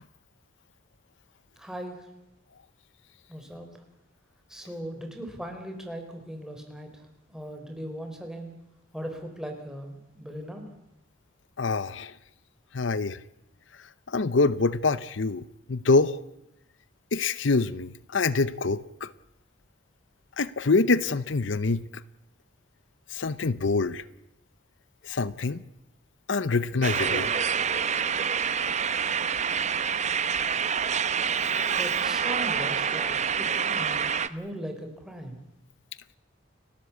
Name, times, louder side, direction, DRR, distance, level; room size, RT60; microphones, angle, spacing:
voice 1, 1.6-2.0 3.3-3.7 4.5-6.9 7.3-8.5 8.9-10.6 31.7-34.0 34.3-35.4, equal, 5° right, 4 dB, 3.9 m, -38 dB
voice 2, 11.6-12.1 12.7-13.2 14.1-15.4 15.7-16.2 17.1-19.1 20.4-21.8 23.1-24.0 25.0-25.6 26.3-27.3, left 3 dB, 75° left, 17 dB, 0.7 m, -25 dB
sound 1, 26.8-34.3, right 7 dB, 35° right, 0.9 m, -27 dB
30.0 x 13.0 x 8.5 m, 0.88 s
head